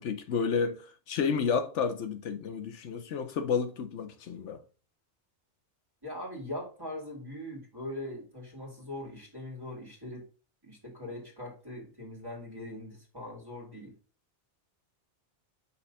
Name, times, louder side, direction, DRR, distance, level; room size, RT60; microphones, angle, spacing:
voice 1, 0.0-4.6, left 6 dB, 85° left, 1.1 m, -31 dB
voice 2, 6.0-10.3 10.6-13.9, left 1 dB, 20° right, 2.3 m, -41 dB
5.7 x 3.2 x 5.4 m
omnidirectional pair, 1.2 m